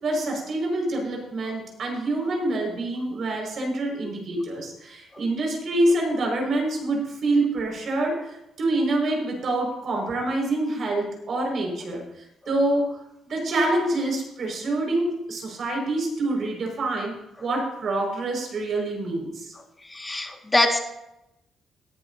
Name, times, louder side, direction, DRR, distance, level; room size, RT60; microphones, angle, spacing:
voice 1, 0.0-8.3 8.6-12.0 12.5-13.0 13.3-17.1 17.4-19.5, right 2 dB, 55° right, 0 dB, 5.3 m, -26 dB
voice 2, 19.9-20.8, left 2 dB, 20° left, 4 dB, 1.8 m, -23 dB
18.0 x 10.5 x 2.8 m, 0.86 s
cardioid pair, 90°, 0 cm